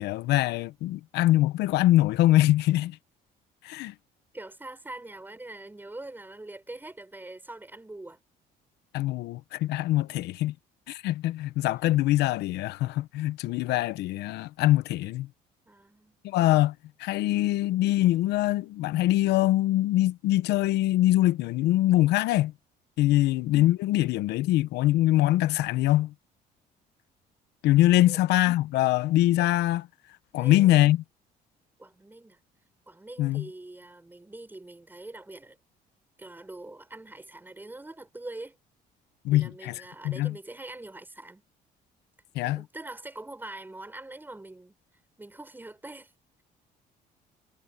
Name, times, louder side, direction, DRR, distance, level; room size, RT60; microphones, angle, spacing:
voice 1, 0.0-3.0 3.6-3.9 8.9-10.5 10.9-15.3 16.2-16.7 17.0-22.5 23.0-26.1 27.6-29.9 30.3-31.0 33.2-33.4 39.2-39.7 40.0-40.3 42.3-42.6, left 15 dB, 85° left, 0.9 m, -23 dB
voice 2, 4.3-8.2 10.0-10.3 15.6-16.2 23.0-23.3 28.0-28.2 30.3-30.9 31.8-32.4 32.9-35.6 36.2-38.6 39.3-41.4 42.5-44.7 45.2-46.1, right 2 dB, 10° right, 6.7 m, -44 dB
cardioid pair, 110°, 17 cm